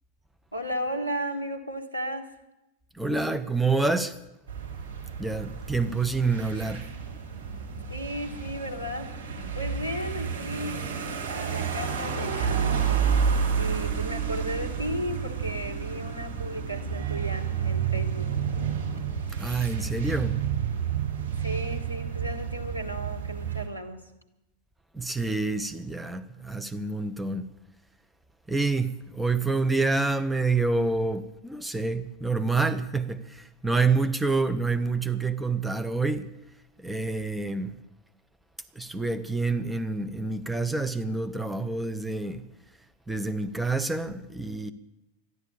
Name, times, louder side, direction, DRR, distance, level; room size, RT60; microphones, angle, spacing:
voice 1, 0.5-2.3 7.9-9.1 9.5-10.8 11.3-12.9 13.6-18.3 21.4-24.0, equal, 90° right, 1.5 m, -34 dB
voice 2, 2.9-4.2 5.2-6.9 19.4-20.4 24.9-27.4 28.5-36.3 36.8-37.8 38.7-42.4 43.1-44.7, right 3 dB, 5° right, 0.7 m, -27 dB
sound 1, 4.5-23.7, right 7 dB, 60° right, 4.0 m, -30 dB
13.0 x 11.0 x 8.5 m
figure-of-eight pair, 90°, 0 cm